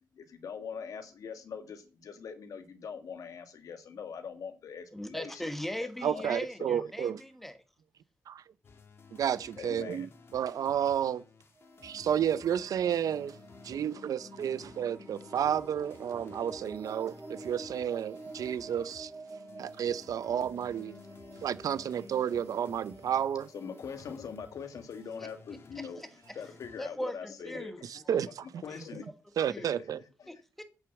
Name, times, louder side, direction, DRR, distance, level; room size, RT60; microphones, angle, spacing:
voice 1, 0.1-5.4 5.8-6.3 6.6-6.9 9.6-10.1 23.5-26.0 26.3-27.9 28.3-29.1 29.6-29.9 30.2-30.3, left 6 dB, 65° left, 1.7 m, -42 dB
voice 2, 4.9-7.6 25.2-25.3 25.8-26.1 26.8-27.8 28.0-28.2 28.7-28.8 29.5-29.7 30.3-30.6, equal, 5° left, 1.2 m, -39 dB
voice 3, 6.0-7.2 8.3-8.4 9.1-10.1 10.3-11.2 11.8-13.4 13.6-19.1 19.6-20.9 21.4-23.5 27.9-28.6 29.4-30.0, right 9 dB, 65° right, 0.6 m, -31 dB
sound 1, 8.6-26.8, left 4 dB, 40° left, 1.5 m, -55 dB
sound 2, 11.6-26.2, right 2 dB, 25° right, 2.4 m, -49 dB
8.0 x 6.7 x 7.1 m
wide cardioid pair, 160°, 6 cm